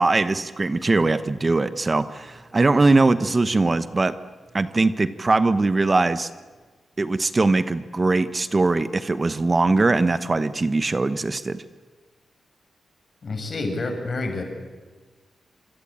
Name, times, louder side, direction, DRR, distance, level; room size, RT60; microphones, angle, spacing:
voice 1, 0.0-4.1 4.5-6.3 7.0-11.6, right 3 dB, 35° right, 12 dB, 1.1 m, -21 dB
voice 2, 13.2-14.4, left 2 dB, 50° left, 4 dB, 7.1 m, -28 dB
26.5 x 24.5 x 8.9 m, 1.4 s
cardioid pair, 70°, 0 cm